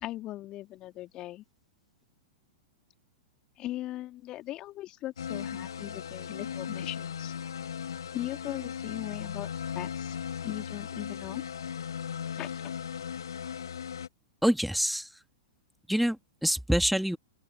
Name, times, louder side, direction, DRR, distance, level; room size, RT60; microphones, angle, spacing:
voice 1, 0.0-1.4 3.6-7.3 8.1-9.5 9.7-10.2 10.4-11.4 12.3-12.7, left 15 dB, 35° left, 2.9 m, -39 dB
sound 1, 5.2-14.1, left 8 dB, 75° left, 3.3 m, -37 dB
voice 2, 14.4-15.1 15.9-17.2, equal, ahead, 2.5 m, -26 dB
open air
figure-of-eight pair, 105°, 2 cm